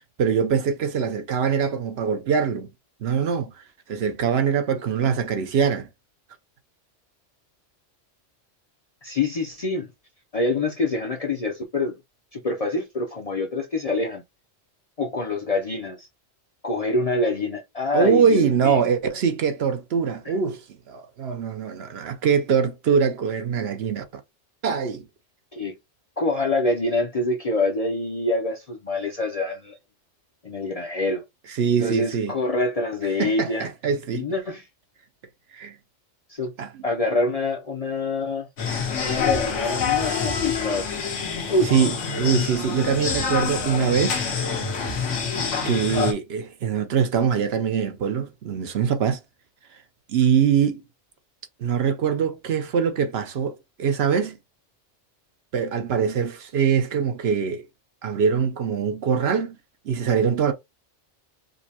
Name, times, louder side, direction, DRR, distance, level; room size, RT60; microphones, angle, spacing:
voice 1, 0.2-2.7 3.0-3.6 3.9-5.9 17.9-24.0 24.6-25.1 31.5-32.3 33.2-34.2 35.5-35.7 36.6-36.8 41.7-44.2 45.6-49.2 50.1-50.8 51.6-54.4 55.5-57.6 58.0-59.6 59.8-60.5, right 6 dB, 65° right, 0.8 m, -23 dB
voice 2, 9.0-9.9 10.3-11.9 12.3-14.2 15.0-16.1 16.6-18.9 20.2-20.3 25.5-25.7 26.2-29.8 30.4-31.2 31.8-33.7 34.1-34.6 36.3-36.5 36.8-38.5 39.0-40.9 41.5-41.9, left 2 dB, 45° left, 0.5 m, -26 dB
sound 1, 38.6-46.1, left 6 dB, 90° left, 1.4 m, -26 dB
5.1 x 2.1 x 2.8 m
omnidirectional pair, 1.2 m